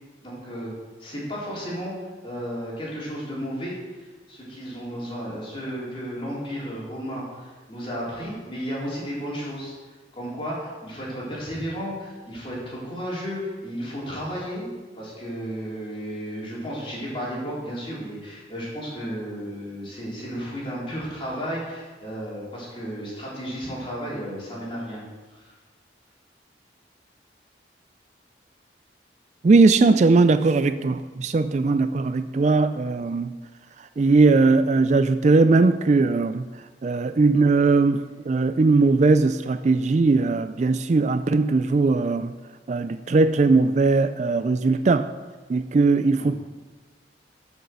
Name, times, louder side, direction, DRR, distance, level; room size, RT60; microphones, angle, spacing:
voice 1, 0.2-0.7 1.0-14.7 14.9-25.5 46.2-46.4, equal, 30° left, -6 dB, 4.0 m, -33 dB
voice 2, 29.4-33.3 34.0-36.5 36.8-42.4 42.7-45.1 45.5-46.3, right 3 dB, 40° right, 11 dB, 0.3 m, -19 dB
12.5 x 6.4 x 6.8 m, 1.3 s
head